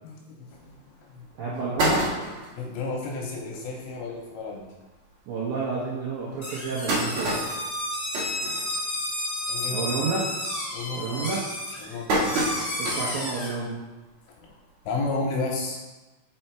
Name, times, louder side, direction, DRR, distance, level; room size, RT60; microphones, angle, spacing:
voice 1, 0.0-1.3 2.6-4.6 9.5-10.2 10.7-11.3 11.8-12.8 14.4-14.5 14.9-15.8, left 3 dB, 80° left, -1 dB, 2.8 m, -33 dB
sound 1, 0.7-0.8 1.2-1.3 1.5-2.6 3.2-3.3 3.5-3.6 4.0-4.1 4.9-5.0 5.5-5.6 6.3-9.2 9.5-9.9 10.2-10.6 11.2-13.2 13.7-13.8 15.0-15.1, right 1 dB, 60° right, 1.9 m, -28 dB
voice 2, 1.4-2.1 5.3-7.5 9.7-10.2 10.9-11.4 12.8-13.8, right 4 dB, 80° right, -6 dB, 2.1 m, -30 dB
sound 2, 6.4-13.5, left 1 dB, 30° left, 1.9 m, -31 dB
5.5 x 5.4 x 4.5 m, 1.1 s
omnidirectional pair, 5.5 m